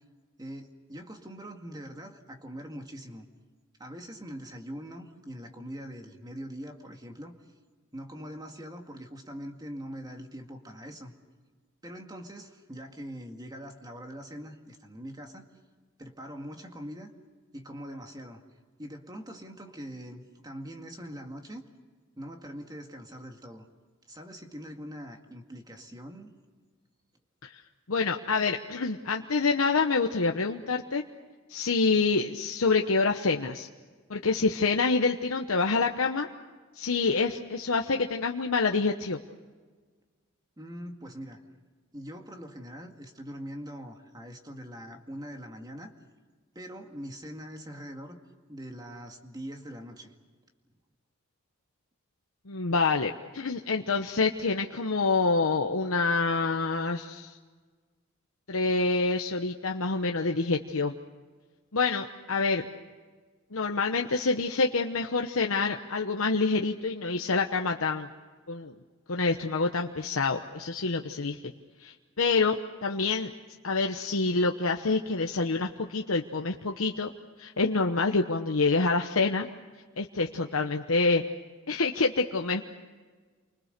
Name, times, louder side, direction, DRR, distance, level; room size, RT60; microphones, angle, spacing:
voice 1, 0.4-3.2 3.8-7.4 7.9-11.1 11.8-15.5 16.0-17.1 17.5-18.4 18.8-21.6 22.2-23.6 24.1-26.3 40.6-41.4 41.9-45.9 46.6-48.2 48.5-50.1, equal, 20° right, 4 dB, 2.1 m, -42 dB
voice 2, 27.9-31.0 31.5-33.7 34.1-36.3 36.8-39.2 52.5-57.3 58.5-60.9 61.7-62.6 63.5-68.1 68.5-68.7 69.1-71.4 71.8-72.6 72.8-73.3 73.6-77.1 77.4-79.5 80.0-81.2 81.7-82.6, left 4 dB, 80° left, 3 dB, 1.0 m, -27 dB
29.5 x 25.0 x 6.7 m, 1.4 s
head